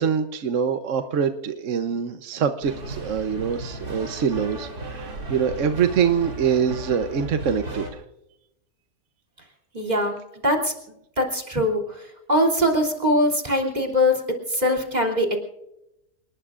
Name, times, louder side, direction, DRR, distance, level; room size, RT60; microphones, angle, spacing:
voice 1, 0.0-8.0, right 7 dB, 60° right, 8 dB, 1.1 m, -24 dB
sound 1, 2.6-7.9, right 2 dB, 90° right, 3.6 m, -35 dB
voice 2, 9.7-10.1 10.4-10.7 11.2-14.2 14.5-15.4, left 1 dB, 25° right, 0 dB, 3.2 m, -22 dB
28.5 x 19.5 x 2.5 m, 0.87 s
omnidirectional pair, 1.6 m